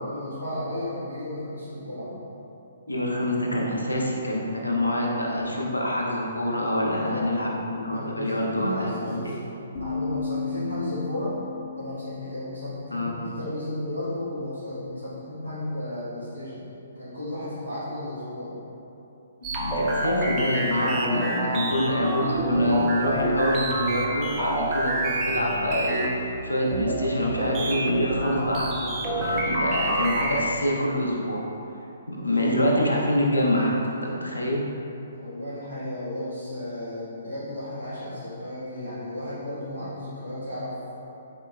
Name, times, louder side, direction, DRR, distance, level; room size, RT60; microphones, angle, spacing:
voice 1, 0.1-2.2 6.8-7.3 7.9-9.4 9.8-11.4 11.7-16.7 16.9-18.5 35.1-41.0, left 1 dB, 80° right, -13 dB, 1.5 m, -34 dB
voice 2, 2.9-9.4 12.9-13.1 19.4-31.4 32.1-34.7, left 1 dB, 80° left, -2 dB, 0.6 m, -26 dB
sound 1, 9.7-13.6, left 5 dB, 35° left, 0.6 m, -35 dB
sound 2, 19.4-30.6, right 1 dB, 20° right, 0.4 m, -28 dB
3.7 x 3.6 x 2.3 m, 2.9 s
figure-of-eight pair, 125°, 0 cm